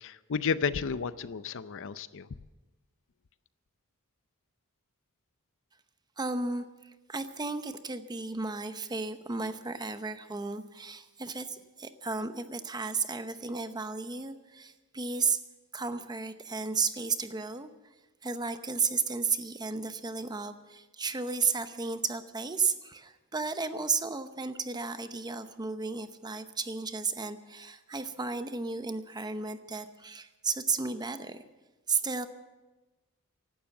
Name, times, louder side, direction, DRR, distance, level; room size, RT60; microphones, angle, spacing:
voice 1, 0.0-2.3, left 5 dB, 60° left, 15 dB, 0.6 m, -32 dB
voice 2, 6.2-15.4 15.7-17.7 18.2-31.4 31.9-32.3, right 4 dB, 20° right, 10 dB, 0.8 m, -33 dB
16.0 x 12.0 x 7.2 m, 1.2 s
head